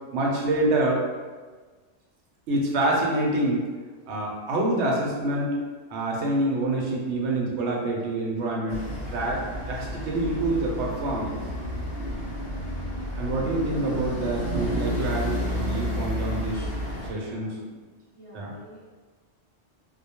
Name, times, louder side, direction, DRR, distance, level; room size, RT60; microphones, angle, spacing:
voice 1, 0.1-1.0 2.5-3.7 4.1-5.5 5.9-11.3 13.2-16.7 17.1-17.5 18.3-18.5, right 2 dB, 75° right, -2 dB, 0.8 m, -26 dB
sound 1, 8.7-17.1, equal, 60° left, 1.0 m, -31 dB
voice 2, 17.1-17.6 18.1-18.9, equal, 15° left, -10 dB, 0.7 m, -48 dB
2.2 x 2.1 x 2.8 m, 1.4 s
omnidirectional pair, 1.2 m